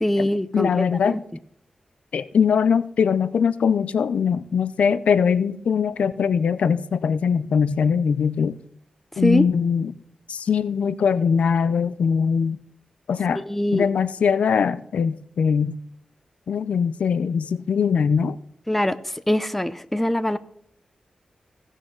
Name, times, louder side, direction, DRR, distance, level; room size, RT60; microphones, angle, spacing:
voice 1, 0.0-1.2 9.2-9.4 13.4-13.9 18.7-19.0 19.3-20.4, left 1 dB, 10° left, 0.6 m, -22 dB
voice 2, 0.5-1.2 2.1-8.6 9.2-9.9 10.3-12.6 13.1-13.4 13.7-15.8 16.5-18.4, left 6 dB, 85° left, 0.4 m, -21 dB
16.5 x 6.3 x 3.8 m
wide cardioid pair, 85°, 2 cm